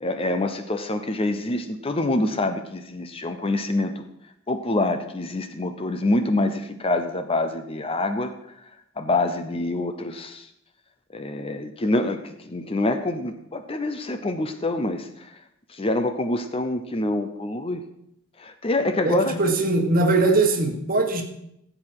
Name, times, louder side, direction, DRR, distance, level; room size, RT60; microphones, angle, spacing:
voice 1, 0.0-4.1 4.5-8.3 9.0-10.5 11.1-15.3 15.7-17.8 18.4-19.4, left 2 dB, 25° left, 9 dB, 0.6 m, -26 dB
voice 2, 19.0-21.2, right 2 dB, 40° right, 4 dB, 1.6 m, -21 dB
15.5 x 7.7 x 4.8 m, 0.78 s
head